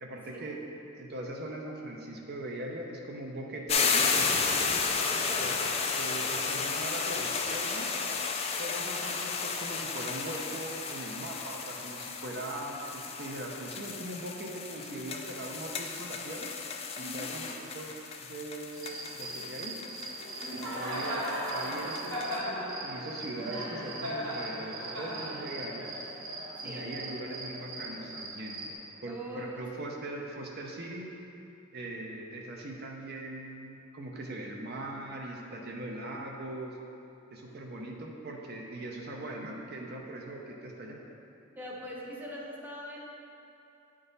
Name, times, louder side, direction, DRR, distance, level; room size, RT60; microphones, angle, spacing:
voice 1, 0.0-0.6 0.9-4.2 5.4-5.5 6.0-7.9 8.6-16.5 17.0-17.9 18.2-18.9 19.1-19.7 20.5-21.2 21.5-22.3 22.8-25.9 26.6-28.6 29.0-31.1 31.7-36.8 37.3-41.0, right 1 dB, 50° right, 0 dB, 0.6 m, -40 dB
sound 1, 3.7-22.4, left 5 dB, 30° left, 0.4 m, -33 dB
voice 2, 5.2-5.5 17.0-17.4 20.4-20.8 26.6-26.9 29.1-29.7 41.5-43.1, equal, 10° right, -4 dB, 0.7 m, -42 dB
Cricket, 18.7-28.7, right 1 dB, 70° right, 1.5 m, -37 dB
9.0 x 3.8 x 4.0 m, 2.7 s
head